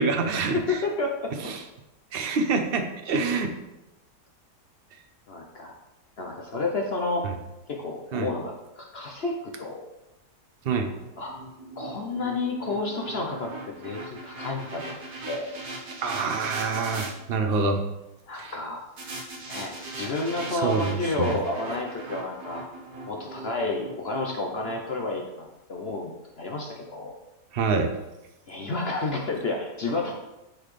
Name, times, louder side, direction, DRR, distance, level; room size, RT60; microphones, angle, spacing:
voice 1, 0.0-0.8 1.4-1.6 2.1-3.5 7.2-7.3 8.1-8.3 10.6-10.9 16.0-17.8 18.3-18.5 20.5-21.3 27.5-27.9, right 4 dB, 75° right, 5 dB, 0.5 m, -26 dB
voice 2, 0.5-1.3 5.3-5.7 6.2-7.3 7.7-9.8 10.7-10.8 11.2-11.3 11.8-15.0 15.3-15.5 18.3-18.8 19.5-22.6 23.1-25.3 25.7-27.1 28.5-30.1, left 3 dB, 50° left, 0 dB, 0.8 m, -30 dB
sound 1, 10.9-17.1 19.0-25.2, right 2 dB, 55° right, 1.7 m, -40 dB
10.5 x 4.1 x 3.2 m, 0.97 s
omnidirectional pair, 1.8 m